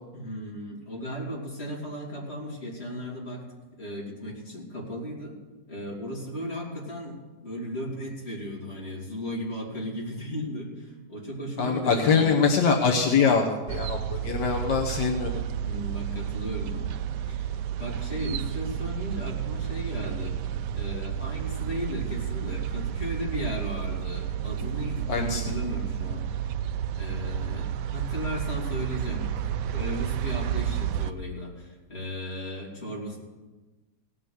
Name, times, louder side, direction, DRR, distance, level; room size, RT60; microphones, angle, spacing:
voice 1, 0.1-3.4 3.8-5.4 5.7-12.3 15.6-17.0 17.3-20.4 20.7-26.3 27.0-33.2, equal, 35° left, -4 dB, 3.5 m, -36 dB
voice 2, 11.6-15.3 25.1-25.4, left 5 dB, 80° left, 1 dB, 1.7 m, -23 dB
sound 1, 13.7-31.1, right 10 dB, 80° right, 1.2 m, -31 dB
17.5 x 6.0 x 8.1 m, 1.2 s
omnidirectional pair, 1.8 m